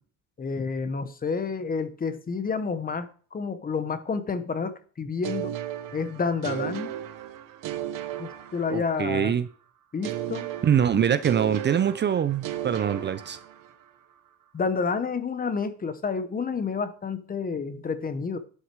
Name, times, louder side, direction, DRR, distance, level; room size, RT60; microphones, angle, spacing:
voice 1, 0.4-5.6 5.9-6.9 8.2-9.3 9.9-10.4 10.9-11.2 14.5-18.4, left 5 dB, 25° left, 1.0 m, -29 dB
sound 1, 5.2-9.2 10.0-13.9, right 11 dB, 90° right, 1.0 m, -35 dB
voice 2, 8.7-9.5 10.6-13.4, right 8 dB, 35° right, 0.5 m, -24 dB
11.5 x 6.3 x 4.8 m
cardioid pair, 135°, 32 cm